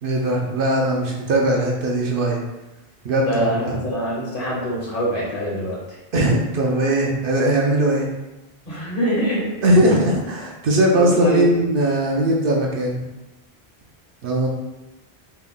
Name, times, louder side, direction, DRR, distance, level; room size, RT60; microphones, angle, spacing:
voice 1, 0.0-2.4 3.0-3.8 6.1-8.1 9.6-13.0 14.2-14.5, right 1 dB, 65° right, -1 dB, 0.7 m, -19 dB
voice 2, 3.2-6.0 8.6-9.5 10.9-11.5, equal, 55° left, -5 dB, 1.1 m, -24 dB
3.3 x 2.2 x 3.6 m, 1.0 s
omnidirectional pair, 1.1 m